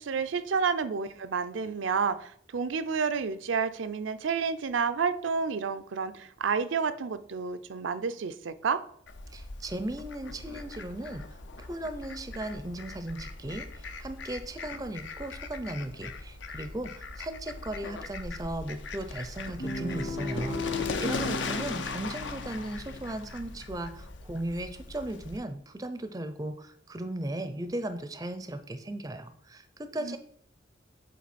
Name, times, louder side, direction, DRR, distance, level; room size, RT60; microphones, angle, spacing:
voice 1, 0.0-8.8 30.0-30.2, right 5 dB, 85° right, 12 dB, 0.5 m, -30 dB
Fowl, 9.1-25.4, left 3 dB, 75° left, 0.6 m, -39 dB
voice 2, 9.3-30.2, right 1 dB, 20° right, 10 dB, 0.4 m, -37 dB
Guitar, 19.6-23.9, left 2 dB, 50° left, 1.3 m, -36 dB
7.4 x 3.9 x 4.2 m, 0.64 s
head